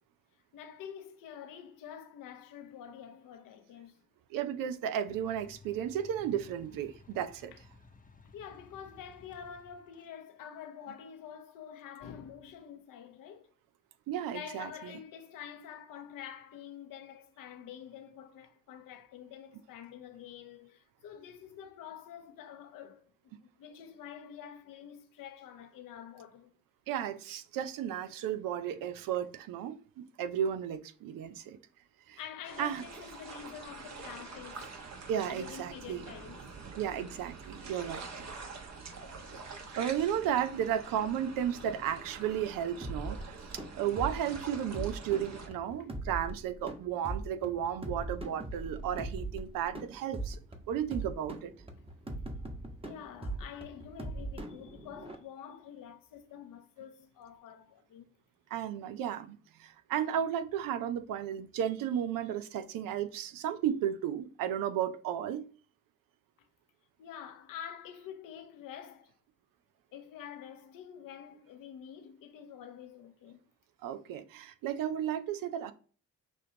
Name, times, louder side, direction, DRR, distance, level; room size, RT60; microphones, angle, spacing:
voice 1, 0.5-4.0 7.5-7.6 8.3-13.5 14.3-23.0 23.4-26.5 32.2-34.7 35.3-36.5 51.7-52.5 52.8-58.1 67.0-69.1 69.9-73.4, left 8 dB, 75° left, 0.8 m, -47 dB
voice 2, 4.3-7.5 14.1-14.9 26.9-31.6 32.1-32.2 32.6-32.8 35.1-36.0 36.8-38.3 39.8-50.4 50.7-51.5 58.5-65.5 73.8-75.7, right 9 dB, 80° right, 0.6 m, -34 dB
sound 1, 5.1-10.1, left 4 dB, 25° left, 0.8 m, -57 dB
sound 2, 32.4-45.5, right 4 dB, 50° right, 1.2 m, -46 dB
sound 3, 42.8-55.2, right 2 dB, 15° right, 1.1 m, -41 dB
6.2 x 2.6 x 2.7 m
supercardioid pair, 50°, 33 cm